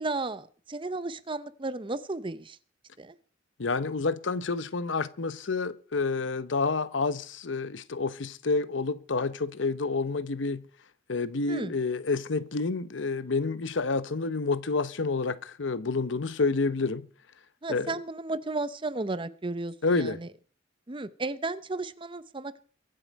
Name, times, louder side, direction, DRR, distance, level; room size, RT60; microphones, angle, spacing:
voice 1, 0.0-2.6 3.0-3.2 11.5-11.7 17.6-20.3 20.9-22.6, right 2 dB, 25° right, 0.7 m, -34 dB
voice 2, 3.6-10.6 11.1-17.0 17.7-17.9 19.8-20.2, left 3 dB, 80° left, 0.8 m, -29 dB
23.0 x 7.7 x 5.3 m
head